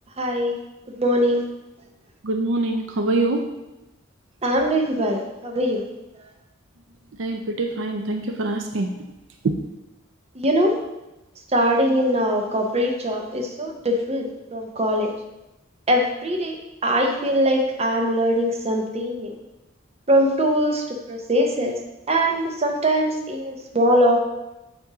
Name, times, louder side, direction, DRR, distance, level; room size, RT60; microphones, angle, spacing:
voice 1, 0.2-0.6 1.0-1.4 4.4-5.8 10.4-10.8 11.5-15.1 15.9-16.6 16.8-19.3 20.1-21.8 22.1-24.2, equal, 30° right, 2 dB, 0.8 m, -22 dB
voice 2, 2.2-3.4 7.2-8.9 9.4-9.5, right 2 dB, 70° right, 3 dB, 0.5 m, -24 dB
8.0 x 2.7 x 4.8 m, 0.96 s
head